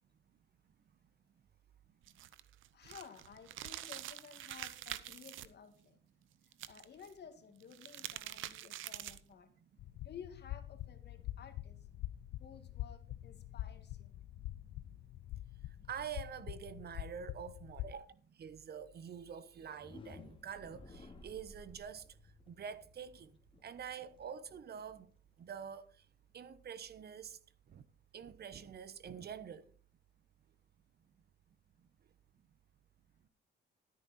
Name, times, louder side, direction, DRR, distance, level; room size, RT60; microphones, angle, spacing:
sound 1, 2.0-5.5 6.5-7.1 7.6-9.3, right 13 dB, 85° right, 0.8 m, -46 dB
voice 1, 2.7-6.0 6.7-9.5 10.0-11.9 12.4-14.1, left 7 dB, 55° left, 2.1 m, -54 dB
sound 2, 9.8-17.9, left 15 dB, 80° left, 0.5 m, -45 dB
voice 2, 14.4-15.0 15.6-22.1 22.5-25.1 25.4-26.0 26.3-27.4 27.7-27.8 28.1-29.7, right 7 dB, 55° right, 1.0 m, -47 dB
sound 3, 19.6-25.5, left 2 dB, 25° left, 2.3 m, -57 dB
13.0 x 9.4 x 4.2 m
cardioid pair, 90°, 20 cm